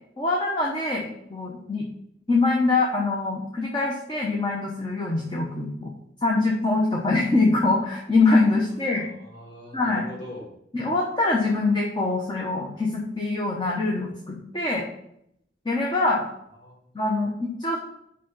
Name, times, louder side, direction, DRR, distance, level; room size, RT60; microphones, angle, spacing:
voice 1, 0.2-1.8 2.3-5.9 6.2-9.1 9.7-10.0 10.7-14.8 15.6-16.2 16.9-17.8, left 3 dB, 25° left, -2 dB, 1.0 m, -24 dB
voice 2, 8.8-10.5 16.6-17.2, left 1 dB, 55° left, -4 dB, 3.6 m, -42 dB
6.2 x 5.6 x 5.6 m, 0.74 s
head